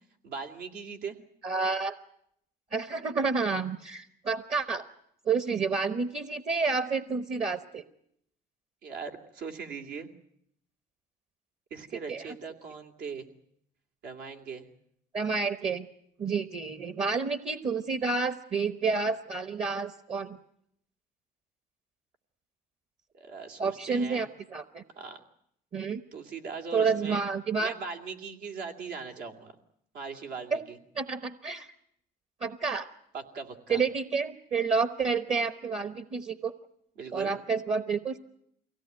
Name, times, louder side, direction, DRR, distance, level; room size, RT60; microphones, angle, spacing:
voice 1, 0.2-1.2 8.8-10.1 11.7-13.3 14.0-14.7 23.1-24.2 25.0-25.2 26.1-27.2 27.6-29.5 29.9-30.8 33.1-33.8 37.0-37.3, right 5 dB, 80° right, 3 dB, 2.7 m, -40 dB
voice 2, 1.4-2.0 2.7-4.9 5.3-7.8 12.1-12.3 15.1-15.9 16.2-20.4 23.6-24.8 25.7-26.0 26.7-27.7 30.5-30.6 30.9-31.7 32.4-32.9 33.7-36.5 37.1-38.2, right 4 dB, 40° right, 10 dB, 1.0 m, -29 dB
23.5 x 17.0 x 9.3 m, 0.73 s
cardioid pair, 110°, 17 cm